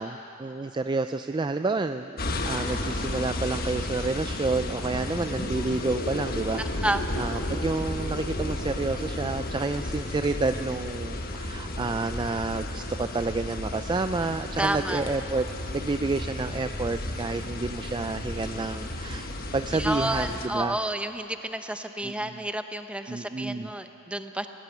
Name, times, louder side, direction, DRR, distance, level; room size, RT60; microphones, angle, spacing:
voice 1, 0.0-2.2 2.5-6.6 7.2-15.4 15.7-20.8 22.0-22.4 23.1-23.7, right 3 dB, 20° right, 9 dB, 0.4 m, -29 dB
sound 1, 2.2-20.5, left 1 dB, 45° left, 1.4 m, -33 dB
voice 2, 6.6-7.0 14.6-15.1 19.7-24.5, right 1 dB, 5° right, 7 dB, 0.8 m, -30 dB
18.0 x 17.5 x 9.1 m, 2.9 s
head